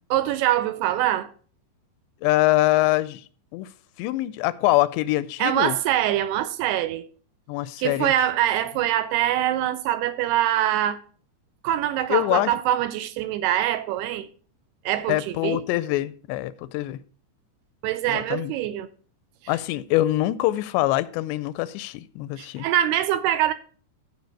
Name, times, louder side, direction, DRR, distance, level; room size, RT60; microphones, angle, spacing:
voice 1, 0.1-1.3 5.4-7.1 7.8-11.0 11.6-14.3 14.9-15.6 17.8-18.9 22.4-23.5, right 12 dB, 80° right, 2.5 m, -24 dB
voice 2, 2.2-3.2 3.5-3.7 4.0-5.8 7.5-8.1 12.1-12.5 15.1-17.0 18.1-18.5 19.5-22.7, left 17 dB, 90° left, 2.8 m, -24 dB
14.0 x 5.2 x 4.6 m
omnidirectional pair, 4.9 m